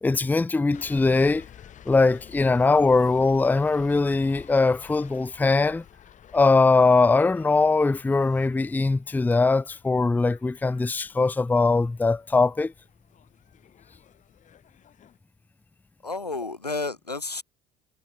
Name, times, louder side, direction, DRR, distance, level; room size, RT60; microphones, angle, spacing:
voice 1, 0.0-1.4 1.9-5.8 6.3-12.7, left 3 dB, 10° left, 0.6 m, -21 dB
sound 1, 0.7-15.2, left 9 dB, 40° left, 3.4 m, -50 dB
voice 2, 16.0-17.4, left 3 dB, 90° left, 2.7 m, -31 dB
figure-of-eight pair, 60°, 20 cm